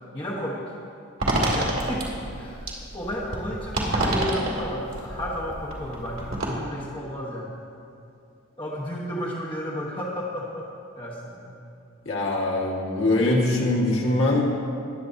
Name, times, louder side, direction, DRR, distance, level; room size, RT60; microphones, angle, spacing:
voice 1, 0.1-0.7 1.5-2.7 2.9-7.6 8.5-10.7 11.0-11.6, equal, 25° left, -5 dB, 1.0 m, -32 dB
sound 1, 1.2-6.5, right 1 dB, 75° right, 1.9 m, -28 dB
voice 2, 12.1-14.5, left 2 dB, 60° left, -3 dB, 1.6 m, -22 dB
19.5 x 7.4 x 2.7 m, 2.5 s
head